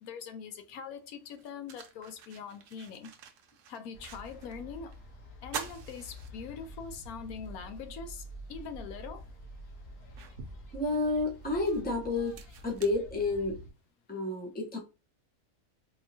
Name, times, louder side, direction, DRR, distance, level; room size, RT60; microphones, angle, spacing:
voice 1, 0.0-3.1 3.7-4.9 5.4-9.2, left 6 dB, 85° left, 1.1 m, -43 dB
sound 1, 0.6-0.7 1.2-4.6 4.9-5.0 5.4-6.9 7.4-7.5 8.9-9.0 9.5-13.7, right 7 dB, 70° right, 1.0 m, -46 dB
sound 2, 3.9-13.7, right 1 dB, 70° left, 1.5 m, -48 dB
voice 2, 10.7-12.4 12.6-13.6 14.1-14.8, left 2 dB, 10° left, 0.7 m, -30 dB
4.0 x 2.9 x 2.6 m
omnidirectional pair, 1.5 m